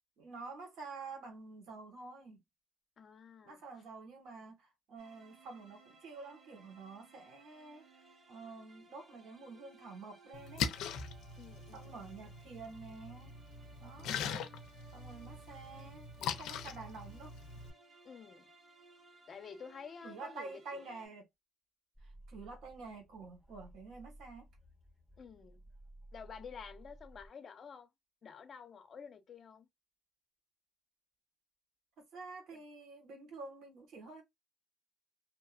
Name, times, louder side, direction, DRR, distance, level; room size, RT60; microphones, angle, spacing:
voice 1, 0.2-2.4 3.4-7.8 8.3-10.8 11.7-13.3 13.8-14.2 14.9-17.3 20.0-21.3 22.0-24.5 32.0-34.2, right 3 dB, 80° right, 1.3 m, -49 dB
voice 2, 3.0-3.6 11.4-12.4 18.0-18.5 19.3-20.9 25.2-25.6 26.1-27.9 28.2-29.7, left 6 dB, 50° left, 0.7 m, -51 dB
sound 1, 5.0-21.1, right 3 dB, 50° right, 1.0 m, -61 dB
Splash splatter, 10.3-17.7, left 7 dB, 90° left, 0.5 m, -42 dB
sound 2, 22.0-27.3, right 1 dB, 15° right, 1.2 m, -57 dB
2.8 x 2.3 x 2.3 m
cardioid pair, 90°, 0 cm